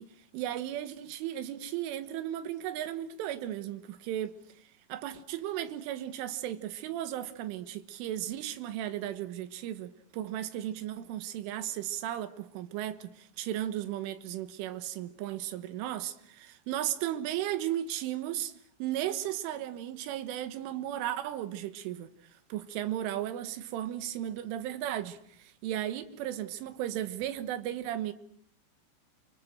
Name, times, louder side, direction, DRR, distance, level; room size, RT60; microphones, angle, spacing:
voice 1, 0.0-4.4 4.9-18.5 18.8-22.1 22.5-28.1, right 12 dB, 90° right, 3.8 m, -35 dB
29.0 x 25.0 x 6.4 m
omnidirectional pair, 5.5 m